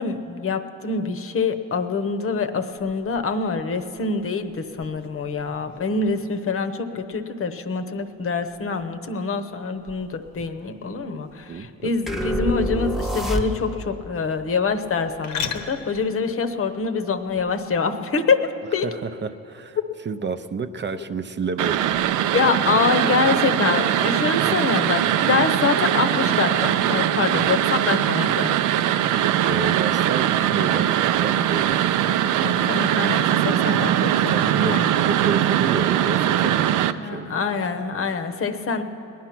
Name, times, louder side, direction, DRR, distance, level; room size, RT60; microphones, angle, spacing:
voice 1, 0.0-18.9 22.3-28.6 32.4-34.9 36.9-38.8, left 4 dB, 45° left, 8 dB, 0.9 m, -25 dB
sound 1, 2.7-17.8, left 6 dB, 70° left, 1.0 m, -42 dB
voice 2, 11.5-11.9 18.8-19.8 20.0-22.4 27.3-27.5 29.5-31.8 34.3-37.3, right 5 dB, 40° right, 9 dB, 0.6 m, -30 dB
sound 2, 12.1-13.9, equal, ahead, 0.9 m, -26 dB
TV Static, 21.6-36.9, right 11 dB, 80° right, 0.5 m, -21 dB
19.5 x 10.5 x 5.9 m, 2.9 s
cardioid pair, 90°, 30 cm